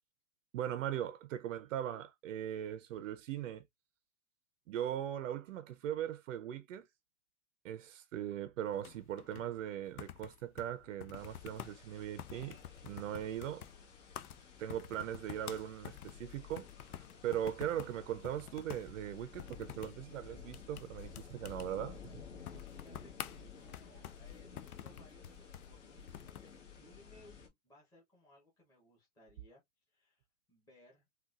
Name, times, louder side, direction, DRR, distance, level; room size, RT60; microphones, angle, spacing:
voice 1, 0.5-3.6 4.7-6.9 7.6-12.6 12.8-13.7 14.6-16.7 17.2-22.0, right 10 dB, 60° right, 0.6 m, -39 dB
sound 1, 8.7-26.5, left 11 dB, 85° left, 0.6 m, -50 dB
sound 2, 11.1-27.5, left 6 dB, 55° left, 1.4 m, -54 dB
voice 2, 22.5-29.6 29.9-31.1, left 1 dB, 10° left, 0.9 m, -64 dB
3.8 x 2.4 x 2.4 m
hypercardioid pair, 145°, 43 cm